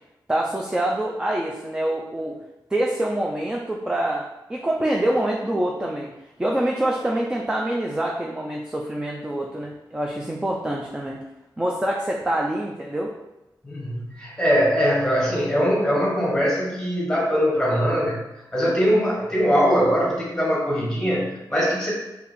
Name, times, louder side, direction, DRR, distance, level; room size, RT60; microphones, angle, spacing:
voice 1, 0.3-2.4 2.7-6.1 6.4-11.2 11.6-13.1, right 1 dB, 10° right, -1 dB, 0.3 m, -25 dB
voice 2, 13.6-18.2 18.5-21.9, equal, 5° left, -4 dB, 1.2 m, -21 dB
4.1 x 2.7 x 4.1 m, 0.96 s
wide cardioid pair, 170°, 8 cm